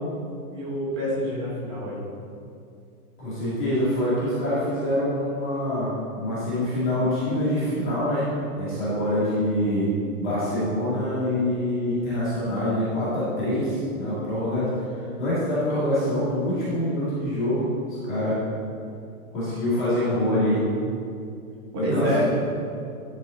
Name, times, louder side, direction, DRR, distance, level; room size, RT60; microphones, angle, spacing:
voice 1, 0.5-2.0 21.7-22.3, equal, 20° right, -5 dB, 1.2 m, -26 dB
voice 2, 3.2-8.3 8.5-9.9 10.2-18.3 19.3-20.6 21.8-22.1, left 1 dB, ahead, -36 dB, 0.5 m, -25 dB
10.5 x 4.0 x 4.0 m, 2.5 s
hypercardioid pair, 175°, 44 cm